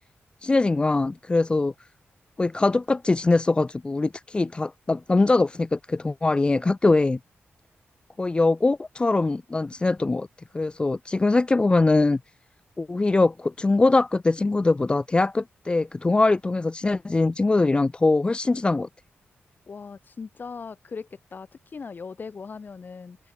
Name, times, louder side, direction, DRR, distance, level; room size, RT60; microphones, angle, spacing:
voice 1, 0.4-1.7 2.4-7.2 8.2-10.3 10.5-12.2 12.8-18.9, left 3 dB, 20° left, 0.4 m, -22 dB
voice 2, 19.7-23.2, left 5 dB, 45° left, 2.4 m, -39 dB
open air
wide cardioid pair, 110°, 4 cm